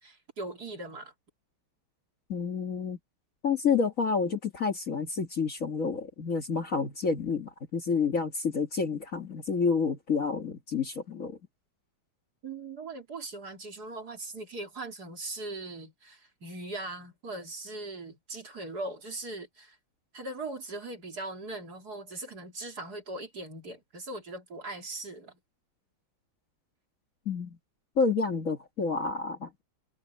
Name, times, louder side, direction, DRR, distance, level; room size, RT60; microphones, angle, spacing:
voice 1, 0.0-1.1 12.4-19.8 20.1-25.4, right 2 dB, 50° right, 3.5 m, -40 dB
voice 2, 2.3-3.0 3.4-11.4 27.3-27.6 28.0-29.5, left 5 dB, 40° left, 2.0 m, -29 dB
omnidirectional pair, 2.3 m